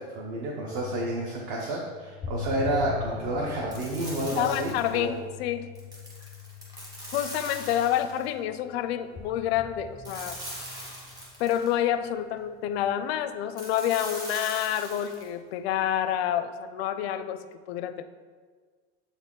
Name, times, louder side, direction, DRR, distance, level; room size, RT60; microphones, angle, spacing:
voice 1, 0.0-5.1, right 1 dB, 45° right, -2 dB, 0.8 m, -30 dB
sound 1, 0.7-8.7 9.2-11.8 12.6-12.9, left 7 dB, 5° left, 0.4 m, -41 dB
sound 2, 3.7-5.1 5.8-8.3 10.0-11.8 13.6-15.3, equal, 15° right, 1.0 m, -41 dB
voice 2, 4.3-5.6 7.1-10.4 11.4-18.0, left 11 dB, 90° left, 11 dB, 0.5 m, -28 dB
7.1 x 4.1 x 3.7 m, 1.5 s
supercardioid pair, 175°, 30 cm